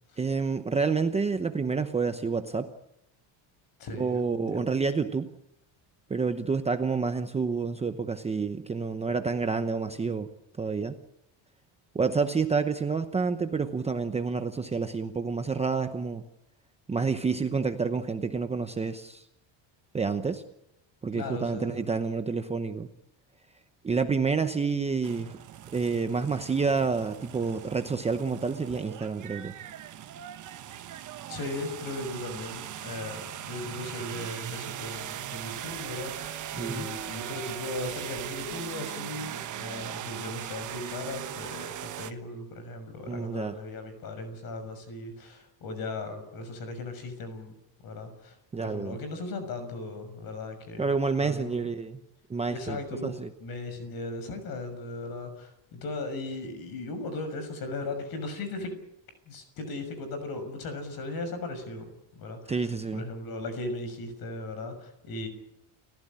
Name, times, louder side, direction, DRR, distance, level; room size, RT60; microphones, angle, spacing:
voice 1, 0.2-2.7 4.0-5.3 6.1-10.3 10.6-10.9 11.9-16.2 16.9-19.3 19.9-20.4 21.0-22.9 23.8-25.4 25.7-29.5 36.6-36.9 43.1-43.6 48.5-49.0 50.8-52.0 52.3-53.3 62.5-63.1, right 4 dB, 15° right, 7 dB, 0.8 m, -29 dB
voice 2, 3.8-4.6 21.1-21.9 30.8-47.6 47.8-50.9 51.2-51.7 52.5-58.7 59.3-65.3, left 2 dB, 45° left, 10 dB, 6.5 m, -37 dB
County Fair Tractor Pull, 25.0-42.1, right 11 dB, 40° right, 1.2 m, -39 dB
30.0 x 15.5 x 8.8 m, 0.82 s
cardioid pair, 180°, 48 cm